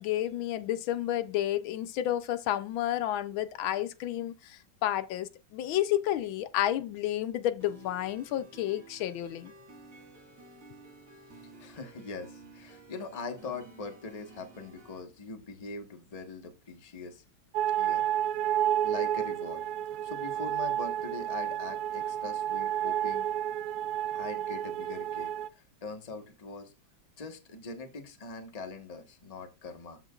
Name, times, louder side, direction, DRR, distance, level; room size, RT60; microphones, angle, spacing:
voice 1, 0.0-9.5, left 12 dB, 80° left, 1.4 m, -31 dB
sound 1, 7.6-15.0, right 3 dB, 50° right, 6.4 m, -53 dB
voice 2, 11.6-17.2 17.8-18.3 18.8-19.6 20.0-23.3 24.1-26.7 27.2-30.0, left 3 dB, 25° left, 1.0 m, -42 dB
sound 2, 17.5-25.5, right 11 dB, 80° right, 0.8 m, -31 dB
13.5 x 5.9 x 2.4 m
omnidirectional pair, 2.2 m